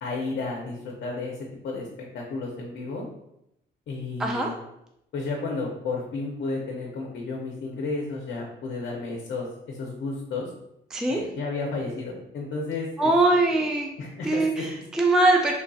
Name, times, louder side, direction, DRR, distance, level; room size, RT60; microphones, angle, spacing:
voice 1, 0.0-1.4 1.6-1.9 2.1-3.0 3.9-4.5 5.1-10.5 11.1-13.1 13.5-13.7 14.0-14.7, left 3 dB, 65° left, -1 dB, 0.6 m, -32 dB
voice 2, 13.0-13.9 14.2-15.5, right 2 dB, 5° right, 1 dB, 0.3 m, -22 dB
3.2 x 2.6 x 2.3 m, 0.81 s
cardioid pair, 90°, 20 cm